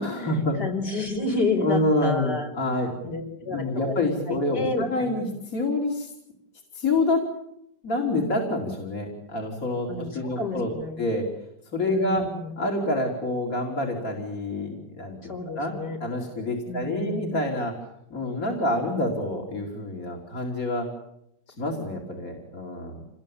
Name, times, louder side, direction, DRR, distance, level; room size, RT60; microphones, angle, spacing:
voice 1, 0.0-0.6 1.6-2.9 3.4-6.1 6.7-7.2 7.8-10.7 11.0-11.3 11.7-12.2 12.6-15.7 16.0-17.7 18.1-20.9 21.6-23.0, left 2 dB, 50° left, 1 dB, 4.3 m, -27 dB
voice 2, 0.6-2.5 3.0-3.9 4.3-5.2 9.9-10.1 10.4-11.0 11.9-12.5 15.3-16.0 16.7-17.3, left 2 dB, 65° left, 3 dB, 5.5 m, -30 dB
28.5 x 20.5 x 8.8 m, 0.81 s
omnidirectional pair, 1.9 m